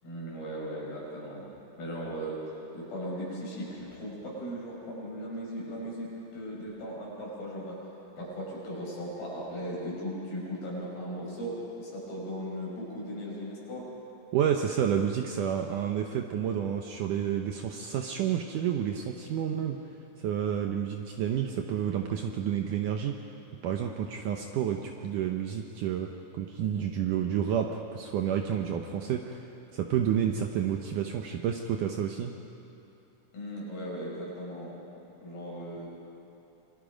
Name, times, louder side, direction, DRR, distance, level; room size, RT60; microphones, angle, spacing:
voice 1, 0.0-2.4 2.7-6.1 6.3-7.8 8.2-13.9 33.3-34.7 35.2-35.9, equal, 75° left, -4 dB, 7.8 m, -37 dB
voice 2, 14.3-19.8 20.2-23.1 23.6-26.1 26.3-32.4, right 9 dB, 70° right, 3 dB, 2.2 m, -30 dB
27.0 x 22.5 x 5.2 m, 3.0 s
omnidirectional pair, 4.3 m